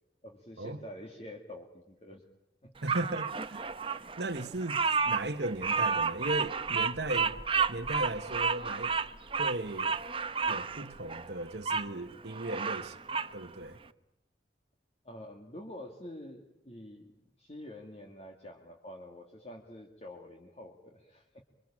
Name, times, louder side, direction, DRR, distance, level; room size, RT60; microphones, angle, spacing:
voice 1, 0.2-2.3 2.6-3.5 4.0-4.1 15.0-21.4, left 1 dB, 35° left, 2.4 m, -47 dB
voice 2, 2.8-3.3 4.2-7.4 7.7-9.0 9.4-9.9 10.5-13.8, right 2 dB, 70° right, 1.3 m, -36 dB
Bird vocalization bird call bird song, 2.9-11.9 12.3-13.3, right 5 dB, 30° right, 1.0 m, -31 dB
27.0 x 24.5 x 8.8 m
head